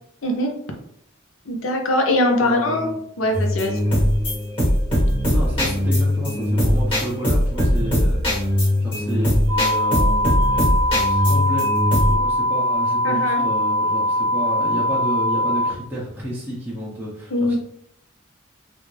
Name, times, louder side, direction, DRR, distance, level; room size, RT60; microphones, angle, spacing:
voice 1, 0.2-0.5 1.5-3.8 13.0-13.4 17.3-17.5, left 1 dB, 75° left, 3 dB, 0.7 m, -22 dB
voice 2, 2.4-3.0 5.3-10.2 10.5-10.6 11.1-11.7 12.0-17.5, equal, 10° right, -8 dB, 0.7 m, -31 dB
sound 1, 3.3-12.2, equal, 25° left, 1.3 m, -20 dB
sound 2, 9.5-15.7, left 1 dB, 85° right, 0.5 m, -21 dB
3.4 x 2.5 x 3.2 m, 0.70 s
head